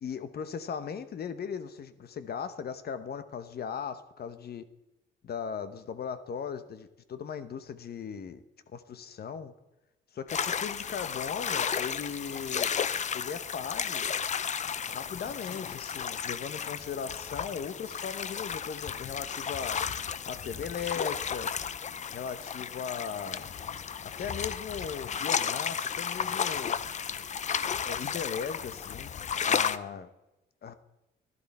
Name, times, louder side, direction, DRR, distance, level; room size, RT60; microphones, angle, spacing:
voice 1, 0.0-4.6 5.2-9.5 10.1-12.7 13.1-14.1 14.9-19.8 20.2-21.6 22.1-23.5 24.0-26.8 27.8-30.1 30.6-30.7, left 7 dB, 55° left, 12 dB, 1.0 m, -38 dB
sound 1, 10.3-29.8, left 7 dB, 35° left, 0.5 m, -33 dB
12.5 x 11.5 x 4.3 m, 0.97 s
cardioid pair, 90°, 20 cm